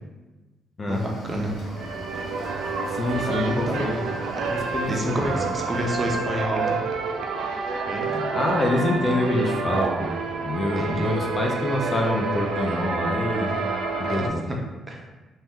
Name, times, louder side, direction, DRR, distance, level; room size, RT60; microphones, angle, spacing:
Cricket / Waves surf, 0.9-6.2, right 1 dB, 80° left, 1.1 m, -39 dB
voice 1, 0.9-1.6 3.3-3.8 4.3-4.4 4.9-6.8 7.9-8.2 10.7-11.2 14.0-14.6 14.9-15.0, equal, 30° right, 0 dB, 0.5 m, -29 dB
sound 1, 1.5-14.3, right 4 dB, 80° right, 0.3 m, -28 dB
voice 2, 2.9-4.1 4.5-5.4 8.3-10.1 10.4-13.6 14.0-14.5, left 2 dB, 35° left, 0 dB, 0.5 m, -26 dB
2.8 x 2.2 x 3.5 m, 1.1 s
cardioid pair, 90°, 0 cm